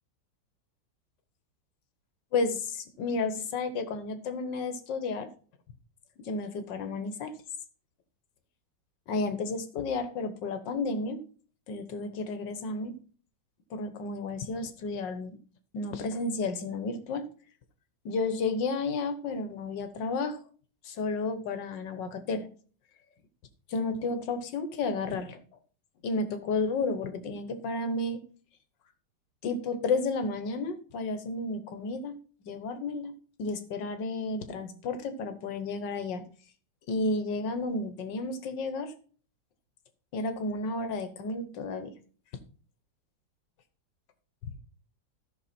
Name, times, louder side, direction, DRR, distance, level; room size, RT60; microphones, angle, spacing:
voice 1, 2.3-5.3 6.2-7.3 9.1-11.2 11.7-13.0 13.7-15.4 15.7-17.3 18.1-20.4 20.8-22.5 23.7-25.4 26.0-28.2 29.4-32.2 32.4-36.2 36.9-38.9 40.1-41.9, left 3 dB, 80° left, 9 dB, 1.8 m, -32 dB
14.0 x 6.1 x 4.3 m, 0.43 s
omnidirectional pair, 2.0 m